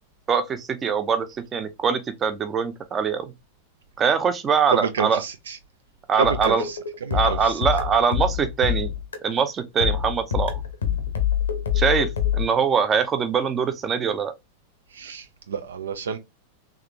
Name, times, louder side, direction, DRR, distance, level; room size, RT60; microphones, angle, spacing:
voice 1, 0.3-3.3 4.0-5.2 6.1-6.6 7.1-8.9 9.2-10.6 11.7-14.3, right 6 dB, 25° right, 0.6 m, -23 dB
voice 2, 4.7-5.6 6.2-7.6 14.9-16.2, right 7 dB, 65° right, 0.4 m, -29 dB
sound 1, 6.2-9.4 9.8-12.5, left 9 dB, 70° left, 0.7 m, -25 dB
3.6 x 3.2 x 2.9 m
figure-of-eight pair, 90°, 0 cm